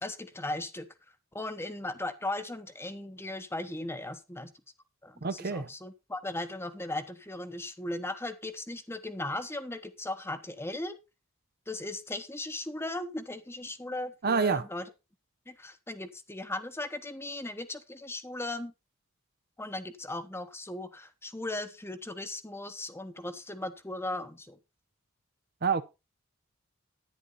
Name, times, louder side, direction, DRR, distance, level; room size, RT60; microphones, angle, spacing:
voice 1, 0.0-0.9 1.3-4.5 5.0-11.0 11.7-14.8 15.5-18.7 19.6-24.6, left 2 dB, 10° left, 1.0 m, -37 dB
voice 2, 5.2-5.7 14.2-14.7 25.6-25.8, right 5 dB, 50° right, 0.7 m, -27 dB
10.5 x 9.8 x 4.0 m
head